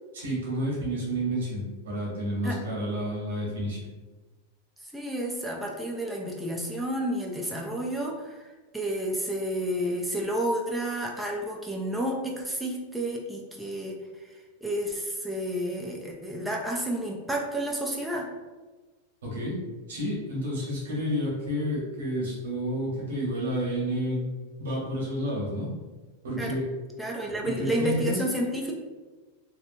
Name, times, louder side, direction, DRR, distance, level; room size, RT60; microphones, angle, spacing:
voice 1, 0.1-3.8 19.2-19.6 19.9-24.2 24.6-25.7 26.2-26.7 27.4-28.2, equal, 90° right, -4 dB, 1.1 m, -30 dB
voice 2, 4.8-8.5 8.7-18.3 26.4-26.6 27.0-28.7, right 1 dB, ahead, -2 dB, 0.4 m, -31 dB
2.8 x 2.2 x 2.6 m, 1.3 s
supercardioid pair, 130°, 0 cm